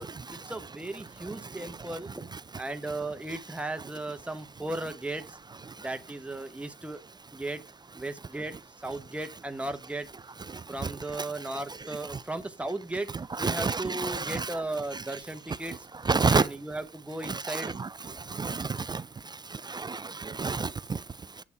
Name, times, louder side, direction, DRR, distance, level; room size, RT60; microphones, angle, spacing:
voice 1, 0.0-2.3 2.6-5.4 5.8-7.0 7.3-7.6 7.9-10.1 10.7-13.1 13.4-15.8 16.3-17.7, right 2 dB, 5° right, 1.1 m, -36 dB
voice 2, 13.1-14.6 14.9-15.0 16.0-16.5 17.2-17.9 18.3-19.0 19.7-21.0, right 4 dB, 20° right, 0.4 m, -29 dB
8.4 x 4.0 x 4.8 m
cardioid pair, 90°, 20 cm